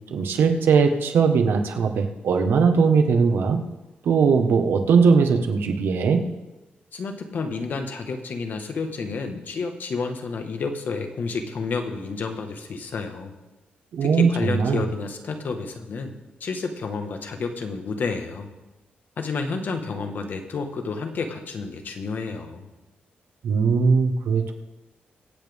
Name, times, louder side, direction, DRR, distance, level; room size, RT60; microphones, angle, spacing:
voice 1, 0.1-3.6 4.0-6.2 13.9-14.8 23.4-24.5, right 5 dB, 80° right, 5 dB, 1.4 m, -20 dB
voice 2, 6.9-13.3 14.0-16.1 16.4-18.5 19.2-22.7, left 4 dB, 55° left, 5 dB, 1.6 m, -30 dB
23.0 x 8.5 x 3.6 m, 1.1 s
wide cardioid pair, 130°, 4 cm